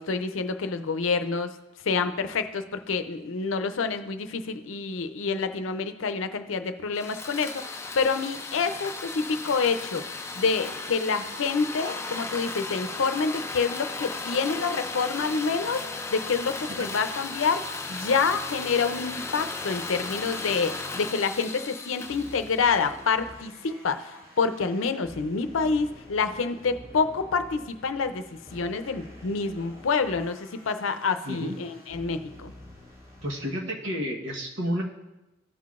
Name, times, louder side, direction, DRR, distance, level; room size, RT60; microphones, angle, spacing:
voice 1, 0.0-1.5 1.8-10.0 10.4-28.2 28.5-32.5, left 5 dB, 90° left, 9 dB, 0.6 m, -27 dB
sound 1, 6.9-23.1, left 3 dB, 15° left, 0.4 m, -36 dB
sound 2, 22.1-33.5, left 1 dB, 30° right, 1.6 m, -48 dB
voice 2, 31.2-31.6 33.2-34.8, equal, 75° right, 0 dB, 1.2 m, -31 dB
15.0 x 5.8 x 2.5 m, 1.0 s
head